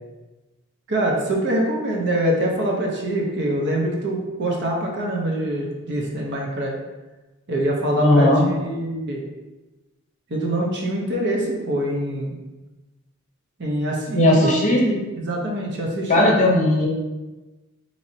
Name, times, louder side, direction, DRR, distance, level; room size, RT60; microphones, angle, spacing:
voice 1, 0.9-6.7 7.5-9.2 10.3-12.3 13.6-14.6 14.8-16.3, right 1 dB, 55° right, -1 dB, 0.7 m, -24 dB
voice 2, 8.0-8.5 14.1-14.9 16.1-16.9, left 1 dB, 35° left, -2 dB, 0.7 m, -17 dB
4.1 x 3.0 x 2.7 m, 1.1 s
head